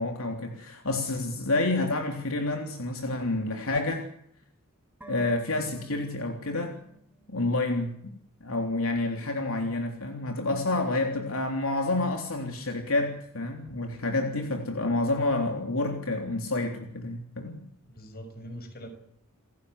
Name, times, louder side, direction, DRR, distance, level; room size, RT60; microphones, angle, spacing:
voice 1, 0.0-4.0 5.1-6.7 7.3-8.0 8.4-17.6, left 2 dB, 70° left, 3 dB, 3.5 m, -29 dB
sound 1, 5.0-8.3 8.6-8.7, right 3 dB, 5° right, 4.3 m, -52 dB
voice 2, 9.2-9.5 17.9-18.9, equal, 45° left, 7 dB, 6.7 m, -43 dB
29.5 x 16.5 x 8.1 m, 0.71 s
head